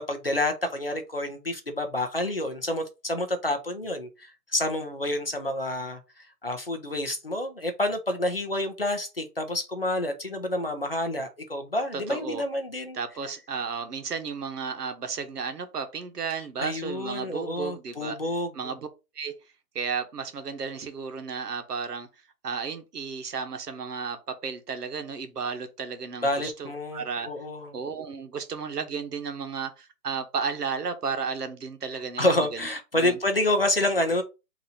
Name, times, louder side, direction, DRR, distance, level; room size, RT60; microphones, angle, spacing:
voice 1, 0.0-13.0 16.6-18.5 26.2-27.8 31.9-34.2, left 1 dB, 40° left, 0.6 m, -28 dB
voice 2, 11.9-12.4 12.9-18.2 18.5-18.9 19.1-19.3 19.7-22.1 22.4-27.3 27.7-32.6 32.9-33.2, right 5 dB, 75° right, 1.1 m, -33 dB
4.0 x 2.8 x 4.0 m
hypercardioid pair, 175°, 48 cm